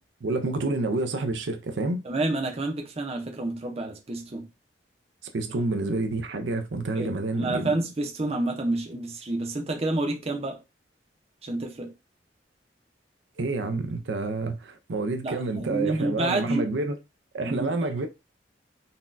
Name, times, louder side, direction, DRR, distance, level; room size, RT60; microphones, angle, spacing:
voice 1, 0.2-2.0 5.3-7.7 13.4-16.9 17.3-18.1, right 2 dB, 85° right, 0.5 m, -28 dB
voice 2, 2.0-4.5 7.0-7.1 7.4-10.6 11.4-11.9 15.2-16.7 17.4-17.8, right 2 dB, 35° right, 0.6 m, -29 dB
3.9 x 2.3 x 2.5 m
head